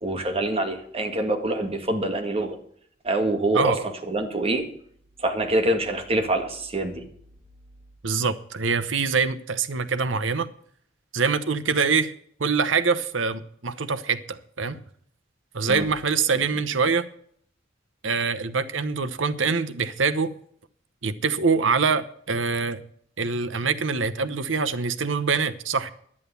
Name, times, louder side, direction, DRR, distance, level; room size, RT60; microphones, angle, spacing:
voice 1, 0.0-2.6 3.0-4.7 5.2-7.0 15.7-15.8, right 1 dB, 30° right, 2.0 m, -25 dB
voice 2, 3.5-3.8 8.0-10.5 11.1-12.1 12.4-14.8 15.5-17.1 18.0-20.3 21.0-22.8 23.2-25.9, right 5 dB, 90° right, 0.9 m, -24 dB
11.0 x 9.7 x 6.9 m
head